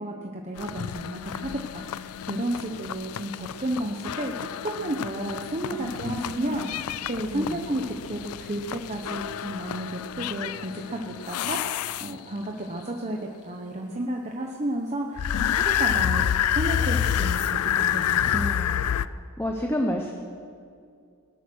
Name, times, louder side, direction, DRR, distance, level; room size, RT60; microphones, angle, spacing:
voice 1, 0.0-6.7 7.1-13.2 13.4-18.4 18.9-19.1, right 1 dB, 30° right, 1 dB, 1.0 m, -32 dB
sound 1, 0.6-12.5 15.2-19.1, left 9 dB, 85° left, 0.4 m, -29 dB
voice 2, 5.7-6.7 7.3-7.6 18.3-18.9 19.4-20.1, equal, 10° left, 3 dB, 0.8 m, -30 dB
18.5 x 12.0 x 6.3 m, 2.4 s
head